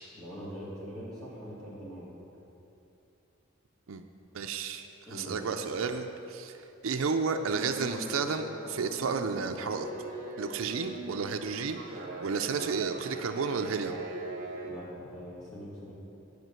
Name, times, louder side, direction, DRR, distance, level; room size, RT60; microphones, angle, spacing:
voice 1, 0.1-2.1 5.0-5.4 14.6-16.0, equal, 15° left, -11 dB, 2.0 m, -43 dB
voice 2, 4.3-6.6 6.8-9.9 10.4-14.0, right 5 dB, 80° right, 5 dB, 0.5 m, -32 dB
sound 1, 7.5-14.7, right 2 dB, 40° right, 1.0 m, -41 dB
11.0 x 5.0 x 7.5 m, 3.0 s
head